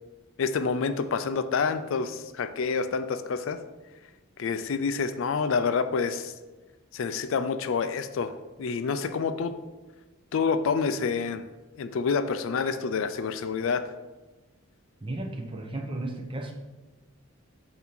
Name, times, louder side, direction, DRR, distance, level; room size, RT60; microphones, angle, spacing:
voice 1, 0.4-3.6 4.4-6.3 6.9-9.6 10.3-11.4 11.8-13.9, left 5 dB, 65° left, 11 dB, 0.4 m, -28 dB
voice 2, 15.0-16.5, right 2 dB, 25° right, 1 dB, 0.7 m, -34 dB
8.1 x 2.8 x 5.9 m, 1.2 s
head